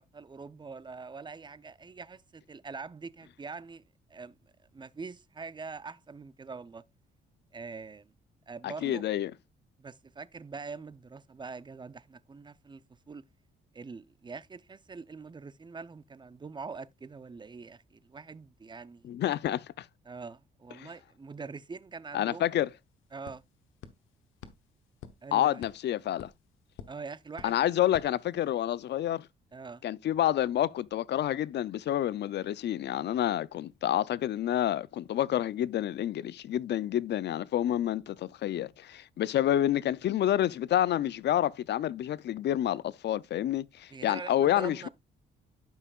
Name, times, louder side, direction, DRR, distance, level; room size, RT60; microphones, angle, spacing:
voice 1, 0.0-3.8 4.1-4.3 4.7-6.8 7.5-8.1 8.5-9.0 9.8-12.8 13.1-13.2 13.7-19.1 20.1-22.6 23.1-23.4 25.2-25.6 26.9-27.7 29.5-29.9 43.9-44.9, right 4 dB, 25° right, 0.5 m, -44 dB
voice 2, 8.6-9.3 19.0-19.9 20.8-20.9 22.1-22.7 25.3-26.3 27.4-29.3 29.8-44.9, left 12 dB, 60° left, 0.5 m, -28 dB
sound 1, 22.2-22.3 22.5-28.9, left 8 dB, 85° left, 1.0 m, -52 dB
12.0 x 5.6 x 2.4 m
cardioid pair, 90°, 20 cm